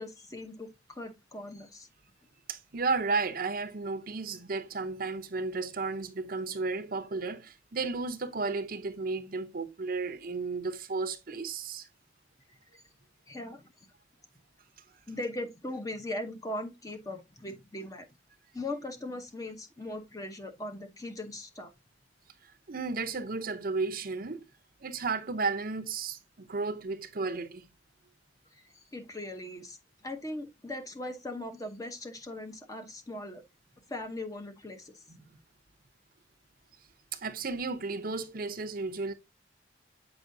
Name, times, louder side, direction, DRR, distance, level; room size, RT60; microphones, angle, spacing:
voice 1, 0.0-1.9 12.7-12.8 13.3-13.7 15.1-18.1 18.5-21.7 28.5-28.6 28.9-33.4 33.9-35.0, left 1 dB, 20° left, 0.8 m, -39 dB
voice 2, 2.5-11.9 22.4-24.4 24.8-27.7 35.1-35.4 37.1-39.1, right 4 dB, 50° right, 0.7 m, -33 dB
7.9 x 5.5 x 2.6 m
head